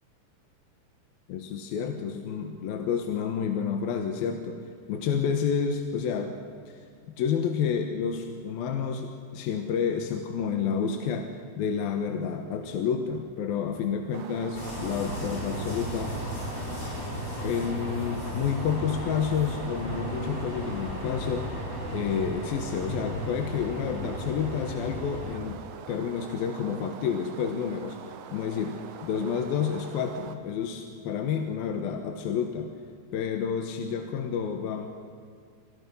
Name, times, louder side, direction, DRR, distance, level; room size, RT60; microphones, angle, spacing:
voice 1, 1.3-4.6 4.9-6.3 6.7-6.9 7.2-11.3 11.6-16.1 17.4-21.5 21.9-25.6 25.9-28.8 29.0-32.7 33.1-34.9, left 7 dB, 70° left, 4 dB, 2.8 m, -29 dB
sound 1, 14.1-30.4, right 8 dB, 85° right, 3.7 m, -44 dB
sound 2, 14.5-25.4, left 1 dB, 25° left, 5.1 m, -35 dB
29.5 x 26.5 x 5.5 m, 2.2 s
omnidirectional pair, 5.0 m